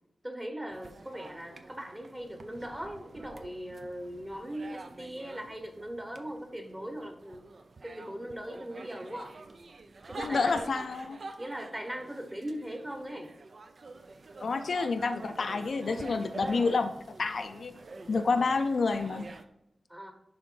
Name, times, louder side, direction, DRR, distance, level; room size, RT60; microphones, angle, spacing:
voice 1, 0.2-7.4 7.8-9.3 10.1-10.7 11.4-13.3 18.4-18.5 19.9-20.1, equal, 10° right, 5 dB, 1.1 m, -40 dB
sound 1, 0.7-19.4, right 3 dB, 55° right, 0.6 m, -47 dB
voice 2, 10.2-11.2 14.4-16.9 17.2-17.7 18.1-19.3, left 4 dB, 65° left, 7 dB, 0.5 m, -29 dB
11.0 x 3.8 x 3.9 m, 0.83 s
wide cardioid pair, 130°, 0 cm